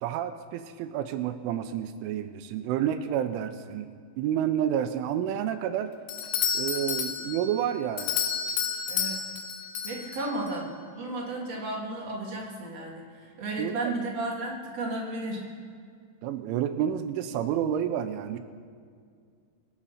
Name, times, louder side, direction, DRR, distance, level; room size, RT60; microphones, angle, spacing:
voice 1, 0.0-5.9 6.5-8.2 13.6-14.0 16.2-18.4, right 10 dB, 85° right, 9 dB, 3.1 m, -30 dB
Doorbell, 6.1-10.6, left 7 dB, 80° left, 2.3 m, -31 dB
voice 2, 8.9-9.2 9.8-15.5, right 2 dB, 45° right, -2 dB, 2.1 m, -34 dB
24.5 x 8.5 x 5.7 m, 2.1 s
omnidirectional pair, 5.7 m